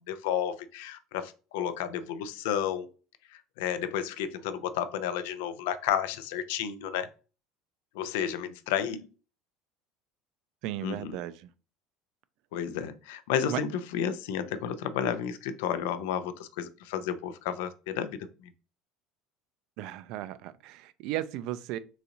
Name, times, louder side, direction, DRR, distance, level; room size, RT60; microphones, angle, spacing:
voice 1, 0.1-2.9 3.6-7.1 7.9-9.1 10.8-11.2 12.5-18.3, left 9 dB, 90° left, 0.4 m, -32 dB
voice 2, 10.6-11.5 13.5-13.6 19.8-21.8, right 13 dB, 65° right, 0.4 m, -35 dB
3.9 x 2.5 x 2.9 m
cardioid pair, 140°, 0 cm